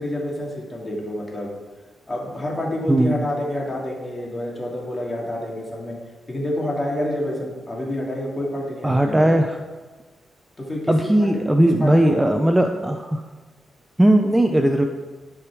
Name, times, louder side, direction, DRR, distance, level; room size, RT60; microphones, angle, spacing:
voice 1, 0.0-1.5 2.1-6.0 6.3-9.4 10.6-12.8, left 1 dB, 25° left, -2 dB, 2.6 m, -28 dB
voice 2, 2.9-3.3 8.8-9.6 10.9-13.2 14.0-14.9, right 1 dB, 10° right, 5 dB, 0.5 m, -18 dB
12.0 x 5.0 x 4.7 m, 1.3 s
cardioid pair, 95°, 0 cm